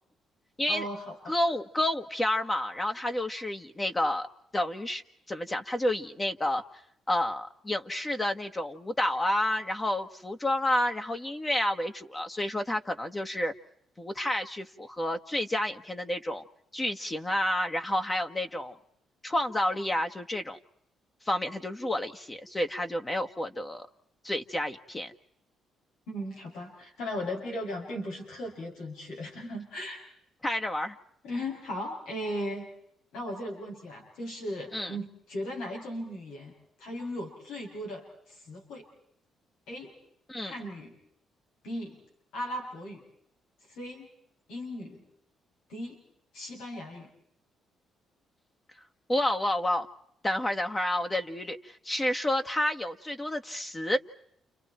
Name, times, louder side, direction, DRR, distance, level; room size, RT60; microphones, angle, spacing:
voice 1, 0.7-1.4 26.1-30.0 31.2-32.7 33.1-38.9 39.7-39.9 40.4-41.0 41.6-42.0 42.3-43.0 43.7-44.1 44.5-45.0 45.7-46.0 46.3-47.1, equal, 90° left, 0 dB, 7.7 m, -37 dB
voice 2, 1.3-4.3 4.5-5.0 5.3-6.6 7.1-13.5 14.0-16.4 16.7-18.7 19.2-20.6 21.3-23.9 24.2-25.1 30.4-30.9 34.7-35.0 40.3-40.5 49.1-49.9 50.2-54.0, left 1 dB, 20° left, 6 dB, 1.6 m, -30 dB
30.0 x 30.0 x 4.5 m, 0.72 s
cardioid pair, 90°, 0 cm